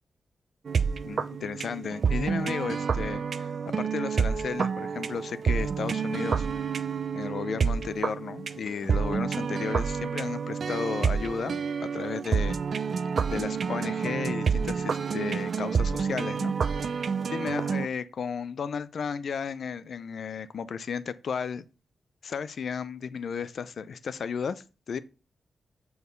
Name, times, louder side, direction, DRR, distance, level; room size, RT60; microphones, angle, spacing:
sound 1, 0.7-17.9, right 6 dB, 55° right, 0.6 m, -29 dB
voice 1, 1.0-3.5 3.8-6.5 7.1-12.6 13.3-17.0 17.3-21.6 22.2-25.0, left 6 dB, 70° left, 0.7 m, -34 dB
8.3 x 4.7 x 5.3 m
wide cardioid pair, 135°, 0 cm